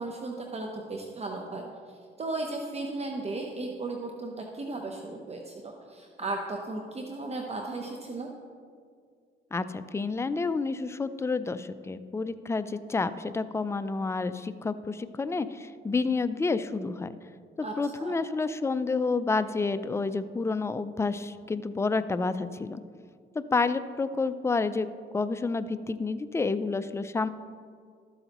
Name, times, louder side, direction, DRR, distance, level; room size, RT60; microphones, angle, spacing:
voice 1, 0.0-8.3 17.6-17.7 18.0-18.1, right 2 dB, 30° right, 2 dB, 0.8 m, -36 dB
voice 2, 9.5-17.1 17.6-22.8 23.4-27.3, left 4 dB, 15° left, 12 dB, 0.4 m, -29 dB
13.0 x 7.9 x 3.0 m, 2.1 s
cardioid pair, 90°, 20 cm